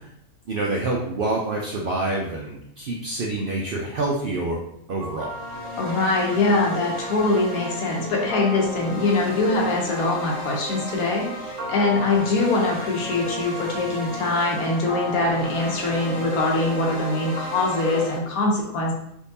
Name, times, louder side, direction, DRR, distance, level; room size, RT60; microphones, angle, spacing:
voice 1, 0.5-4.6 4.9-5.3, right 2 dB, 85° right, -2 dB, 0.4 m, -27 dB
sound 1, 5.0-18.2, right 1 dB, 30° right, 1.2 m, -33 dB
voice 2, 5.8-18.9, left 3 dB, 80° left, -1 dB, 1.2 m, -23 dB
3.6 x 2.7 x 2.6 m, 0.75 s
omnidirectional pair, 1.5 m